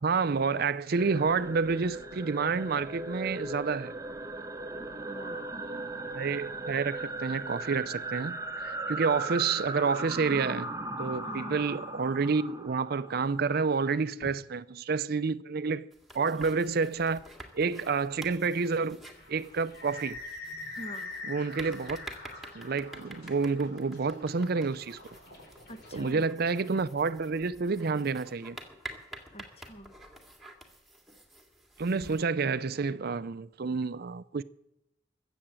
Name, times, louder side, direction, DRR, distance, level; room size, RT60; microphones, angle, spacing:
voice 1, 0.0-3.9 6.1-10.7 11.0-15.9 16.1-17.2 17.5-19.0 19.3-20.2 21.2-22.0 22.5-25.0 25.9-28.6 31.8-34.4, right 4 dB, 55° right, 0.5 m, -29 dB
sound 1, 0.9-14.0, right 2 dB, 15° right, 0.9 m, -38 dB
voice 2, 4.9-5.6 11.2-11.6 14.2-14.3 20.8-21.1 25.7-26.2 29.3-29.9, equal, 35° left, 1.3 m, -44 dB
sound 2, 15.9-32.2, right 2 dB, ahead, 2.1 m, -49 dB
sound 3, 19.1-28.4, left 3 dB, 60° left, 4.6 m, -45 dB
22.0 x 8.0 x 7.5 m
head